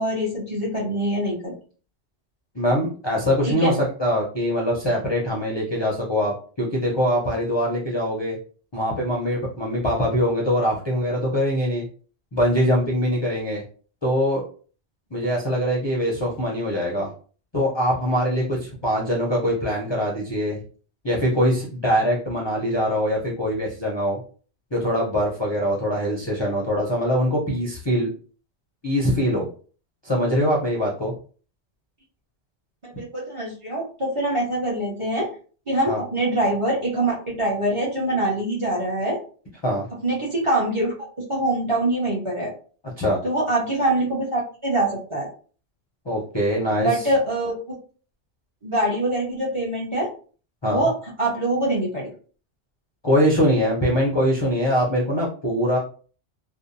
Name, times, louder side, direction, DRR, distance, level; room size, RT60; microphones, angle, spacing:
voice 1, 0.0-1.5 3.5-3.7 32.8-35.3 35.7-39.2 40.0-42.5 43.2-45.3 46.8-47.6 48.6-50.1 50.6-52.1, right 1 dB, 35° right, -5 dB, 0.7 m, -24 dB
voice 2, 2.5-8.4 8.7-11.8 12.3-13.6 14.0-14.4 15.1-17.1 17.5-20.6 21.0-24.2 24.7-28.1 28.8-29.5 30.0-31.1 35.9-36.0 39.6-39.9 43.0-43.2 46.1-47.1 50.6-50.9 53.0-55.8, equal, 35° left, -3 dB, 0.4 m, -23 dB
2.6 x 2.0 x 2.6 m, 0.40 s
omnidirectional pair, 1.1 m